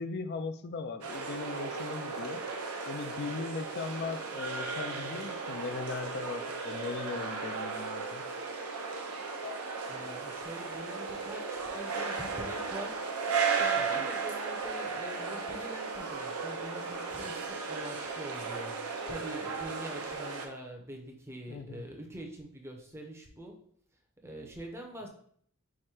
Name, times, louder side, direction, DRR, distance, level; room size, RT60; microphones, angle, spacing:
voice 1, 0.0-2.4 2.9-8.2 13.8-14.1 21.5-21.8, left 4 dB, 45° left, 10 dB, 0.4 m, -38 dB
sound 1, 1.0-20.5, right 4 dB, 80° right, 0.7 m, -35 dB
voice 2, 9.9-13.0 13.6-23.6 24.2-25.1, right 1 dB, 10° right, 1 dB, 0.6 m, -44 dB
4.8 x 2.1 x 4.3 m, 0.62 s
head